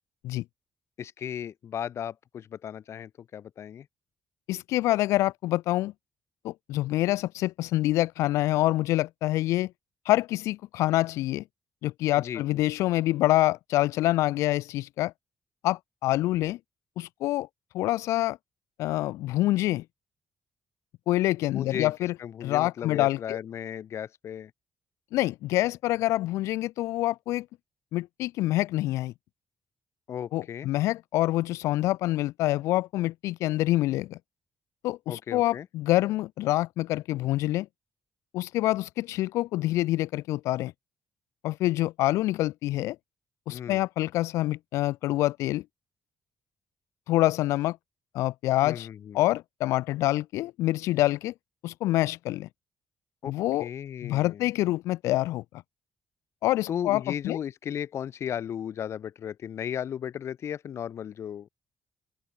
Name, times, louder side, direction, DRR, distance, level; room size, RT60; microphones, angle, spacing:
voice 1, 1.0-3.9 12.2-12.6 21.5-21.9 22.2-24.5 30.1-30.7 35.1-35.7 43.5-43.8 48.6-49.2 53.2-53.3 53.6-54.5 56.7-61.5, left 9 dB, 65° left, 6.7 m, -35 dB
voice 2, 4.5-5.9 6.4-9.7 10.1-11.4 11.8-15.1 15.6-16.6 17.0-17.5 17.7-18.4 18.8-19.8 21.1-22.1 22.4-23.4 25.1-27.5 27.9-29.1 30.3-34.2 34.8-37.7 38.3-40.7 41.4-43.0 43.5-45.6 47.1-47.8 48.1-48.9 49.1-51.3 51.6-52.5 53.2-53.7 54.0-55.4 56.4-57.4, left 16 dB, 90° left, 3.5 m, -26 dB
open air
supercardioid pair, 60°, 5 cm